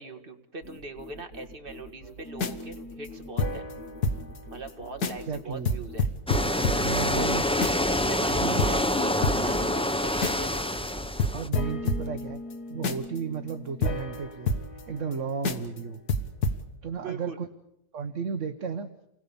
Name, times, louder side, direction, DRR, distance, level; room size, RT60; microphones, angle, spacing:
voice 1, 0.0-3.7 4.5-6.1 7.1-7.3 7.9-10.7 17.0-17.4, right 3 dB, 35° right, 5 dB, 2.1 m, -41 dB
sound 1, 0.6-6.1, left 1 dB, 50° left, 2.0 m, -46 dB
sound 2, 2.3-4.4 4.7-4.8 5.0-5.3 5.6-8.0 8.3-8.4 8.6-10.6 10.9-11.0 11.2-15.1 15.4-15.8 16.1-16.6, left 2 dB, 75° left, 2.1 m, -30 dB
voice 2, 5.3-5.7 6.8-7.4 8.3-8.6 11.3-12.4 12.7-14.5 14.9-16.0 16.8-17.5 17.9-18.9, right 5 dB, 50° right, 7 dB, 1.4 m, -33 dB
sound 3, 6.3-11.5, left 1 dB, 10° left, 0.3 m, -26 dB
29.5 x 20.5 x 7.1 m, 0.82 s
omnidirectional pair, 1.7 m